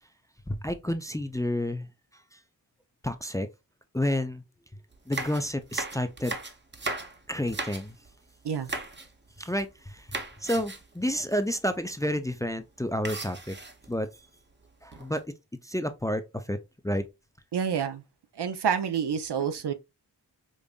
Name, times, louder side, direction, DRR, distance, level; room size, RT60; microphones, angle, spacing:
voice 1, 0.5-1.9 2.3-2.4 3.0-3.5 3.9-4.4 5.1-6.4 7.3-8.0 9.4-10.1 10.4-13.6 13.9-14.1 14.8-15.2 15.6-16.6 16.8-17.1 19.4-19.5, left 1 dB, 10° left, 0.4 m, -30 dB
sound 1, 4.9-8.1 8.6-9.1 9.4-9.8 10.1-10.9 11.3-11.4 11.7-11.9 13.1-14.0 14.6-15.2, right 3 dB, 25° right, 0.8 m, -37 dB
voice 2, 17.5-18.0 18.3-19.7, right 7 dB, 70° right, 0.6 m, -28 dB
5.1 x 2.5 x 2.3 m
cardioid pair, 50°, 41 cm